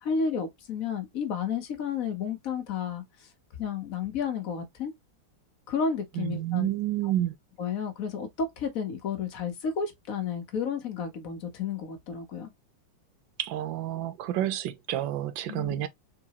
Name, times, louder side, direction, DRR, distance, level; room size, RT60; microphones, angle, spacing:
voice 1, 0.0-3.0 3.6-4.9 5.7-6.7 7.0-7.1 7.6-12.5 15.5-15.8, left 6 dB, 55° left, 1.2 m, -32 dB
voice 2, 6.1-7.4 13.4-15.9, right 12 dB, 80° right, 1.3 m, -29 dB
3.9 x 3.7 x 2.9 m
omnidirectional pair, 2.0 m